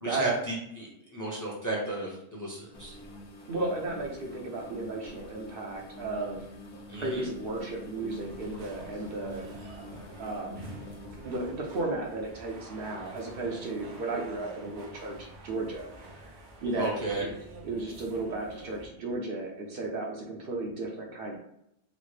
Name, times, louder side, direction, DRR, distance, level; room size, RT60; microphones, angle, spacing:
voice 1, 0.0-3.0 6.9-7.3 16.7-17.3, right 2 dB, 20° left, -3 dB, 0.6 m, -34 dB
sound 1, 2.7-12.9 13.6-13.8 14.3-14.5 15.3-15.8 16.1-16.2 17.1-17.2, left 1 dB, 80° left, 1.1 m, -47 dB
voice 2, 3.5-6.4 6.9-9.5 10.2-10.7 11.2-15.9 16.2-16.3 16.6-17.3 17.6-21.4, right 2 dB, 60° right, 0 dB, 0.8 m, -34 dB
sound 2, 8.0-18.9, right 1 dB, 80° right, 1.0 m, -47 dB
3.9 x 2.0 x 3.2 m, 0.78 s
omnidirectional pair, 1.1 m